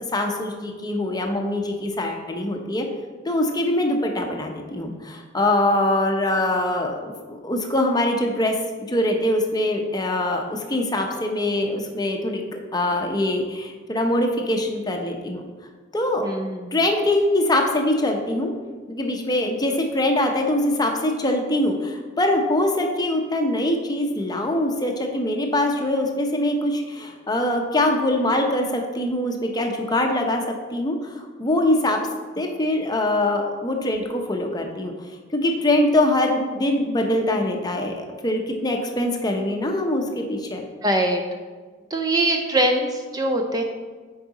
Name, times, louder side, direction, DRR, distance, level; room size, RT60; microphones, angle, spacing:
voice 1, 0.1-2.9 3.2-8.5 8.9-12.4 12.7-15.4 15.9-16.3 16.7-18.5 18.9-30.4 30.7-32.0 32.4-34.9 35.3-40.6, left 1 dB, 20° left, 3 dB, 0.7 m, -23 dB
voice 2, 16.2-16.7 40.8-41.2 41.9-43.6, right 1 dB, 20° right, 3 dB, 0.6 m, -22 dB
8.4 x 4.8 x 4.1 m, 1.4 s
head